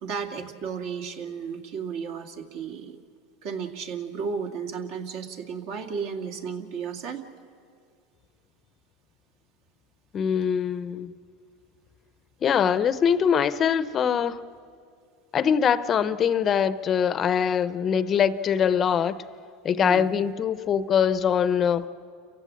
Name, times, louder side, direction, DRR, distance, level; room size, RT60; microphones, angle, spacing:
voice 1, 0.0-3.0 3.4-7.2 19.8-20.1, right 6 dB, 60° right, 2.3 m, -33 dB
voice 2, 10.1-11.1 12.4-14.4 15.3-19.2 19.6-21.9, left 7 dB, 30° left, 0.7 m, -23 dB
29.5 x 15.5 x 8.6 m
supercardioid pair, 135°, 0 cm